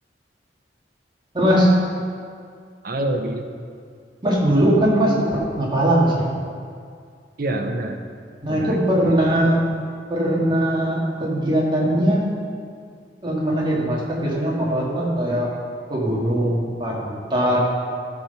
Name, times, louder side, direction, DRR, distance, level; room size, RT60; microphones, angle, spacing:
voice 1, 1.3-1.8 4.2-6.3 8.4-9.6 10.1-12.3 13.2-15.5 15.9-17.6, right 1 dB, 30° right, -4 dB, 2.1 m, -20 dB
voice 2, 2.8-3.5 7.4-8.0 8.5-9.4, right 1 dB, 55° right, 4 dB, 0.9 m, -27 dB
12.0 x 6.0 x 5.7 m, 2.2 s
head